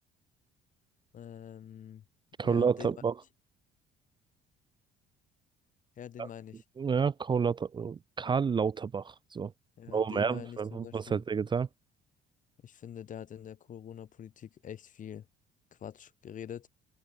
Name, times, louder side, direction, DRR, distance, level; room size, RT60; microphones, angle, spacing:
voice 1, 1.1-2.0 2.4-3.0 6.0-6.6 9.8-11.2 12.6-15.3 15.7-16.7, left 9 dB, 50° left, 3.7 m, -45 dB
voice 2, 2.4-3.1 6.2-6.3 6.8-9.5 9.9-11.7, right 6 dB, 25° right, 0.6 m, -29 dB
open air
cardioid pair, 110°, 17 cm